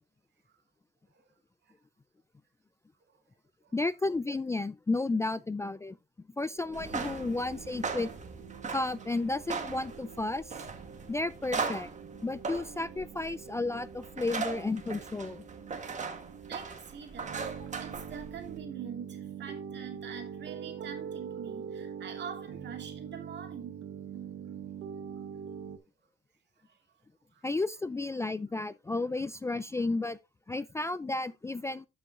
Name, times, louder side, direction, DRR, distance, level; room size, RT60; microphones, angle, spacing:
voice 1, 3.7-6.0 6.4-8.1 8.7-10.6 11.1-11.9 12.2-15.4 27.4-30.2 30.5-31.9, left 2 dB, 15° left, 0.3 m, -32 dB
sound 1, 6.5-25.8, right 7 dB, 80° right, 1.0 m, -44 dB
sound 2, 6.7-18.6, right 5 dB, 35° right, 1.5 m, -39 dB
voice 2, 16.5-23.8 26.7-26.8 27.3-27.5, right 7 dB, 60° right, 2.3 m, -45 dB
12.5 x 5.3 x 2.4 m
cardioid pair, 90°, 20 cm